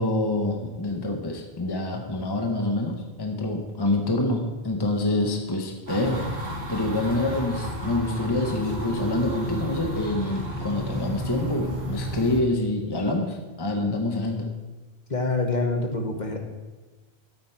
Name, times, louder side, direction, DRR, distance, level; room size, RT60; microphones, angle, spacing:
voice 1, 0.0-6.3 6.7-14.5, left 2 dB, 25° left, 3 dB, 0.9 m, -26 dB
sound 1, 5.9-12.4, equal, 85° right, 2.5 m, -32 dB
voice 2, 15.1-16.4, left 3 dB, 45° left, 3 dB, 1.4 m, -26 dB
12.5 x 8.6 x 4.6 m, 1.2 s
omnidirectional pair, 1.1 m